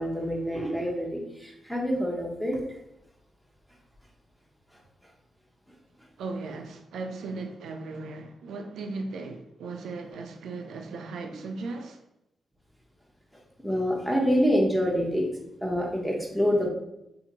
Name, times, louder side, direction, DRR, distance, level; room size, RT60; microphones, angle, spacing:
voice 1, 0.0-2.6 11.3-11.4 13.3-15.3 15.6-16.7, equal, ahead, 0.8 m, -26 dB
voice 2, 6.2-12.0, right 3 dB, 90° right, 0.3 m, -37 dB
2.7 x 2.5 x 2.8 m
cardioid pair, 60°, 0 cm